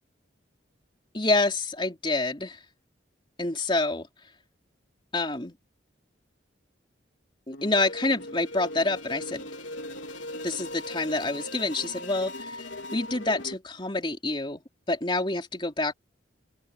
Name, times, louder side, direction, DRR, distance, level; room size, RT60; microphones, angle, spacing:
voice 1, 1.1-2.6 3.4-4.1 5.1-5.5 7.5-9.4 10.4-14.6 14.9-15.9, left 2 dB, 25° left, 3.5 m, -27 dB
sound 1, 7.5-13.5, left 1 dB, 75° left, 4.0 m, -39 dB
open air
head